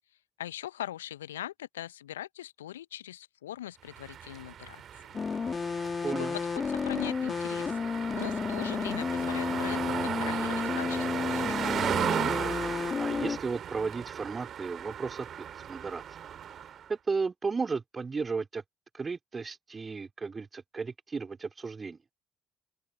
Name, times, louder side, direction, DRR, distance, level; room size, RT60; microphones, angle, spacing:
voice 1, 0.4-4.8 6.2-6.4 6.7-7.8 8.1-12.0, left 12 dB, 80° left, 0.8 m, -41 dB
sound 1, 3.9-16.9, right 9 dB, 50° right, 2.6 m, -36 dB
sound 2, 5.1-13.4, left 5 dB, 35° left, 3.0 m, -32 dB
voice 2, 6.0-6.4 13.0-16.2 16.6-18.6 18.9-22.0, right 4 dB, 30° right, 3.2 m, -34 dB
open air
figure-of-eight pair, 45°, 0 cm